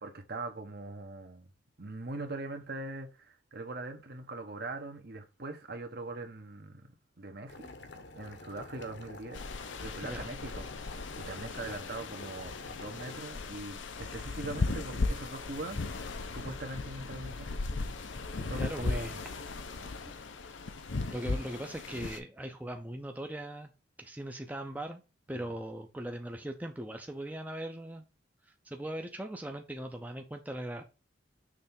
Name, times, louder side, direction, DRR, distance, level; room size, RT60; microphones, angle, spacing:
voice 1, 0.0-1.5 1.8-9.4 9.8-17.5 18.4-19.1 25.3-25.5, right 2 dB, 55° right, 1.2 m, -42 dB
Boiling, 7.5-13.2, left 2 dB, 60° left, 1.1 m, -47 dB
sound 1, 9.3-22.2, left 3 dB, 80° left, 0.8 m, -37 dB
voice 2, 18.6-19.2 21.1-23.7 24.0-25.0 25.3-28.0 28.6-30.8, right 1 dB, 10° right, 0.6 m, -39 dB
6.6 x 3.3 x 5.4 m
head